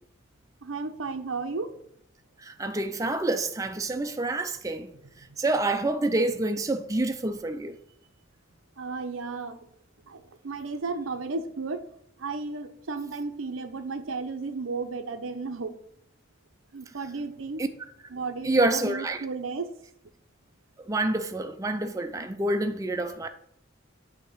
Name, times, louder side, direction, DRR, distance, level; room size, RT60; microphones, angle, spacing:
voice 1, 0.6-1.7 5.3-5.4 8.8-9.6 10.1-11.8 12.2-15.7 16.7-17.6 18.1-19.7, right 4 dB, 85° right, 0.7 m, -34 dB
voice 2, 2.4-4.9 5.4-7.8 17.6-17.7 18.4-19.2 20.9-23.3, right 2 dB, 15° right, 0.4 m, -27 dB
8.0 x 2.9 x 6.2 m
head